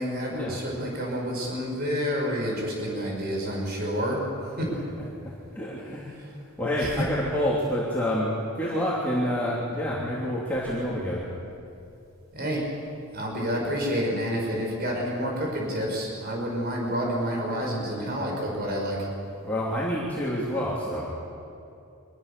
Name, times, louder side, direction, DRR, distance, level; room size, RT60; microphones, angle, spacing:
voice 1, 0.0-4.2 4.6-4.7 6.2-6.3 6.8-7.0 12.3-19.0, equal, 45° right, -1 dB, 5.8 m, -29 dB
voice 2, 4.7-5.1 5.5-6.1 6.6-11.2 19.4-21.1, equal, 10° left, -7 dB, 3.2 m, -28 dB
25.0 x 21.0 x 7.0 m, 2.7 s
head